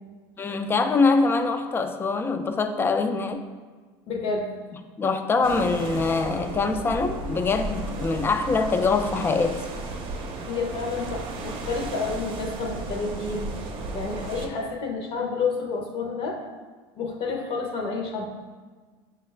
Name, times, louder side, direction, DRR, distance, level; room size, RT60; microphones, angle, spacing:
voice 1, 0.4-3.4 5.0-9.6, left 4 dB, 20° left, 8 dB, 0.3 m, -24 dB
voice 2, 4.1-4.5 10.5-13.5 13.9-16.4 17.0-18.2, left 4 dB, 55° left, 1 dB, 0.7 m, -29 dB
sound 1, 5.4-14.5, right 3 dB, 45° right, 0.6 m, -34 dB
5.8 x 2.3 x 3.2 m, 1.4 s
supercardioid pair, 105°, 12 cm